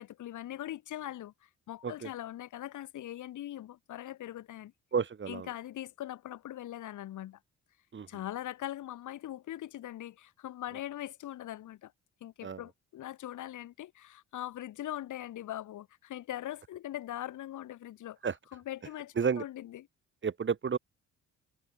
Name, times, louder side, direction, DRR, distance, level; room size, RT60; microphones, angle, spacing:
voice 1, 0.0-4.7 5.3-7.4 8.1-11.9 12.2-18.2 18.5-19.9, left 13 dB, 80° left, 4.7 m, -41 dB
voice 2, 4.9-5.5 7.9-8.1 12.4-12.6 18.2-18.3 19.2-19.4 20.2-20.8, right 6 dB, 40° right, 3.1 m, -31 dB
cardioid pair, 90°, 30 cm